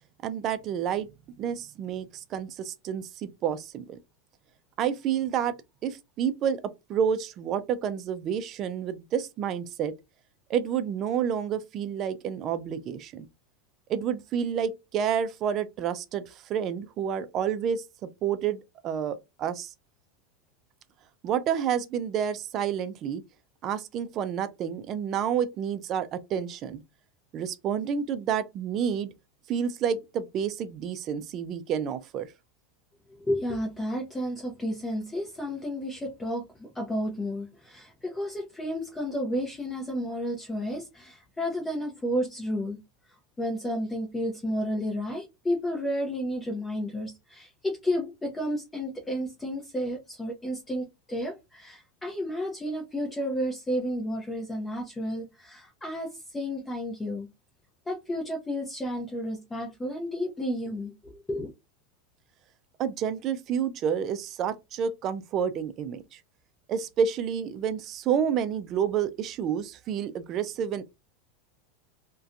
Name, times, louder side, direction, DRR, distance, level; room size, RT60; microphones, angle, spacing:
voice 1, 0.2-1.1 1.4-4.0 4.8-5.5 5.8-6.6 6.9-9.9 10.5-13.3 13.9-19.7 21.2-23.2 23.6-26.8 27.3-29.1 29.5-32.3 62.8-66.2 66.7-70.8, right 8 dB, 40° right, 0.4 m, -29 dB
voice 2, 33.2-42.8 43.4-57.3 57.9-61.5, equal, 15° left, 0.7 m, -32 dB
2.6 x 2.2 x 2.4 m
supercardioid pair, 120°, 0 cm